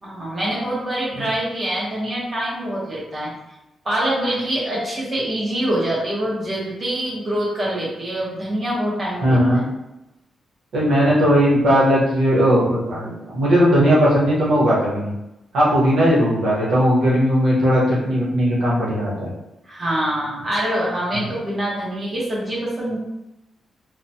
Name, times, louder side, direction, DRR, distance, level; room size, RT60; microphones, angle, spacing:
voice 1, 0.0-3.3 3.8-9.4 19.7-23.0, right 1 dB, 25° right, -6 dB, 0.9 m, -25 dB
voice 2, 9.2-9.6 10.7-15.1 15.5-19.3 21.1-21.3, equal, 75° right, -6 dB, 1.0 m, -18 dB
2.9 x 2.1 x 2.7 m, 0.92 s
wide cardioid pair, 160°, 0 cm